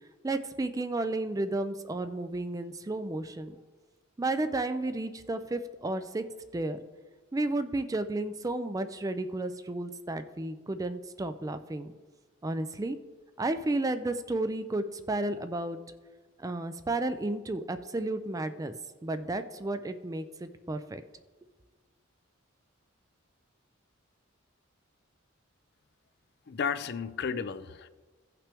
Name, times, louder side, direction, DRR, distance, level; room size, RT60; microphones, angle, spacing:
voice 1, 0.2-3.6 4.2-6.2 6.5-6.8 7.3-11.9 12.4-13.0 13.4-15.8 16.4-18.7 19.0-21.0, right 2 dB, 15° right, 11 dB, 0.4 m, -32 dB
voice 2, 26.5-27.9, left 6 dB, 55° left, 13 dB, 0.4 m, -33 dB
16.0 x 5.8 x 3.4 m, 1.3 s
head